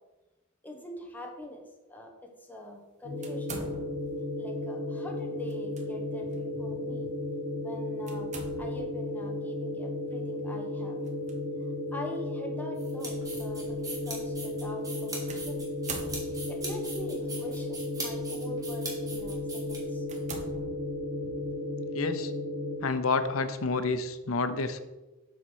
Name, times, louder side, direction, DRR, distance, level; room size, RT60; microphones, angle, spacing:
voice 1, 0.6-1.6 1.9-3.5 4.4-7.1 7.6-8.3 8.6-11.0 11.9-15.7 16.5-20.0 21.2-21.3, left 1 dB, 10° left, 1 dB, 1.2 m, -43 dB
sound 1, 3.0-22.8, left 1 dB, 60° right, 3.0 m, -34 dB
sound 2, 3.2-4.2 5.5-5.8 6.3-6.4 8.1-9.0 11.0-11.3 12.2-12.3 15.3-16.7 17.6-18.0 18.6-18.8 19.3-19.4 20.0-21.3, right 3 dB, 35° right, 1.1 m, -43 dB
sound 3, 12.8-20.2, right 2 dB, 15° right, 2.4 m, -41 dB
voice 2, 21.9-22.3 22.8-24.8, left 3 dB, 85° left, 10 dB, 0.7 m, -29 dB
8.0 x 4.1 x 6.2 m, 1.1 s
head